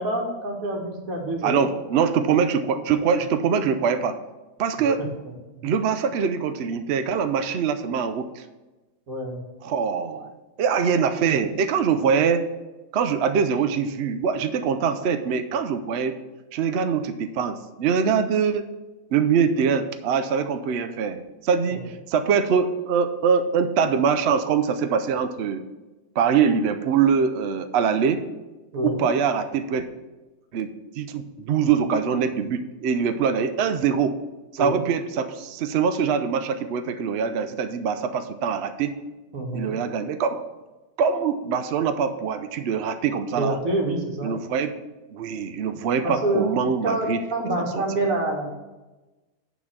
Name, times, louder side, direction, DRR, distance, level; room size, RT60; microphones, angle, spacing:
voice 1, 0.0-1.7 5.5-5.6 9.1-9.4 28.7-29.0 34.6-34.8 39.3-39.7 43.3-44.3 46.0-46.5 46.8-48.5, right 1 dB, 55° right, 0 dB, 2.0 m, -26 dB
voice 2, 1.4-4.2 4.6-5.0 5.6-8.4 9.6-10.3 10.6-12.5 12.9-16.2 16.5-18.7 19.1-25.6 26.2-28.2 28.8-29.8 30.5-30.7 31.0-34.2 34.5-39.0 39.5-40.4 41.0-43.6 44.2-44.7 45.1-47.2 47.6-47.8, right 6 dB, 75° right, 9 dB, 0.6 m, -23 dB
9.0 x 4.0 x 7.2 m, 1.1 s
omnidirectional pair, 1.7 m